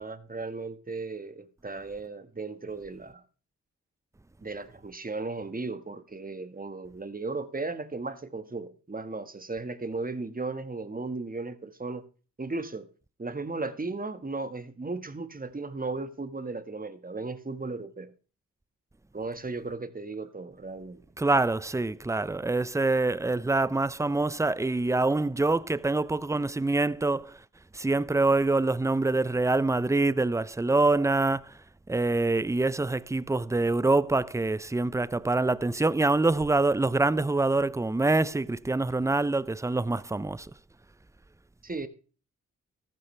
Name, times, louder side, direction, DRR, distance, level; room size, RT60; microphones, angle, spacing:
voice 1, 0.0-3.2 4.4-12.0 12.4-12.9 13.2-18.1 19.1-21.0 41.6-41.9, right 3 dB, 25° right, 1.5 m, -36 dB
voice 2, 21.2-27.3 27.8-31.4 31.9-40.5, right 2 dB, 10° right, 0.5 m, -25 dB
14.0 x 12.5 x 3.3 m
cardioid pair, 50°, 33 cm